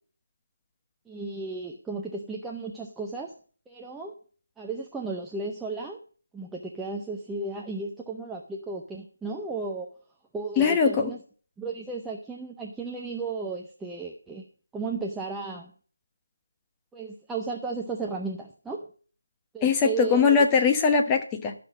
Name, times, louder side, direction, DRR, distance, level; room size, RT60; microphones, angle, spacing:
voice 1, 1.1-3.3 3.7-4.1 4.6-6.0 6.3-9.9 10.3-11.2 11.6-14.5 14.7-15.7 16.9-18.9 19.5-20.5, right 3 dB, 5° right, -1 dB, 0.6 m, -34 dB
voice 2, 10.6-11.1 19.6-21.5, left 5 dB, 15° left, 4 dB, 1.0 m, -21 dB
12.5 x 6.0 x 6.2 m, 0.43 s
figure-of-eight pair, 160°, 0 cm